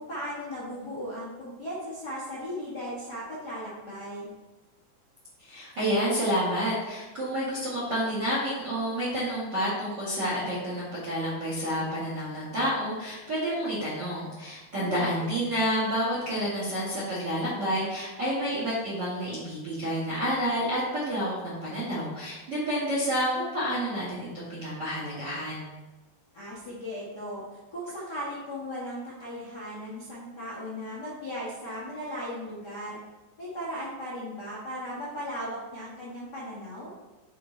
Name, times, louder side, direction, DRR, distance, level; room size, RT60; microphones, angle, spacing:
voice 1, 0.0-4.3 14.8-15.3 26.3-33.0 33.4-36.9, equal, 70° left, -10 dB, 0.9 m, -37 dB
voice 2, 5.4-25.7, equal, 50° right, -7 dB, 1.3 m, -29 dB
8.3 x 3.9 x 4.5 m, 1.1 s
omnidirectional pair, 5.0 m